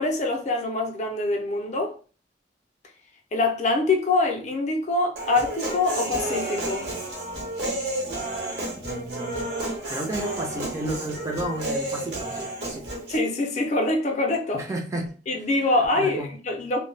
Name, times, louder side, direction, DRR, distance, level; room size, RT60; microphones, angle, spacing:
voice 1, 0.0-1.9 3.3-6.9 13.1-14.6 15.3-16.8, left 2 dB, 40° left, 0.5 m, -24 dB
Human voice, 5.2-13.2, right 1 dB, 65° right, 0.9 m, -31 dB
voice 2, 8.8-9.5 9.9-12.9 14.5-15.1 15.9-16.3, right 1 dB, 20° right, 0.4 m, -32 dB
2.2 x 2.0 x 3.1 m
head